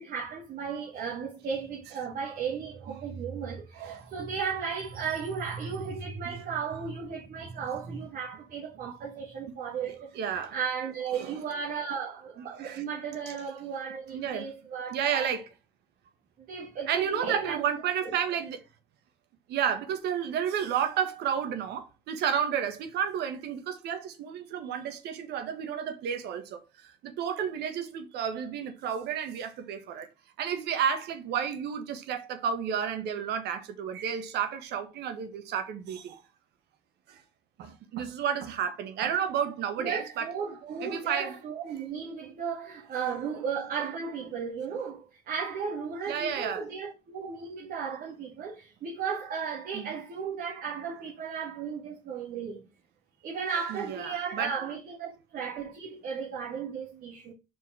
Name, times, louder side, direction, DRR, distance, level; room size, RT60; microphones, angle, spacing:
voice 1, 0.0-15.3 16.5-17.6 39.8-52.7 53.2-57.3, right 6 dB, 60° right, 2.1 m, -35 dB
voice 2, 3.7-4.1 9.8-10.6 11.1-11.4 12.5-12.8 13.3-13.4 14.1-15.4 16.9-18.6 19.5-30.1 30.4-36.2 37.1-37.2 37.6-40.3 40.8-41.4 41.8-41.9 46.1-46.7 49.7-49.9 53.7-54.5, right 8 dB, 75° right, 1.5 m, -31 dB
5.4 x 4.7 x 6.2 m
cardioid pair, 110°, 17 cm